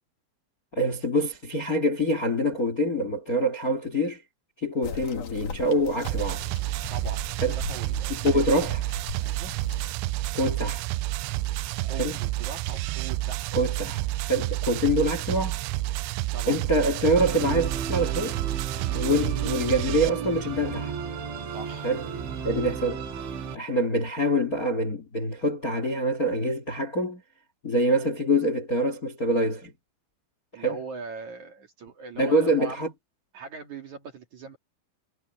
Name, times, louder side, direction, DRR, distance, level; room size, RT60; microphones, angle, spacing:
voice 1, 0.7-4.2 4.6-6.4 7.4-7.5 8.1-8.8 10.3-10.8 12.0-12.2 13.5-15.6 16.5-18.4 18.9-20.9 21.8-22.0 22.4-23.0 23.5-27.2 27.6-29.7 30.5-30.8 32.2-32.9, equal, 75° left, 0.8 m, -25 dB
sound 1, 4.8-10.0, left 6 dB, 45° left, 3.2 m, -40 dB
sound 2, 6.0-20.1, right 17 dB, 85° right, 2.7 m, -30 dB
voice 2, 6.9-7.3 7.5-8.4 9.2-9.5 11.8-13.5 16.3-16.6 18.9-19.1 21.5-21.9 30.5-32.8 33.3-34.6, right 4 dB, 50° right, 2.5 m, -40 dB
Musical instrument, 17.2-23.6, right 6 dB, 70° right, 5.4 m, -34 dB
omnidirectional pair, 5.9 m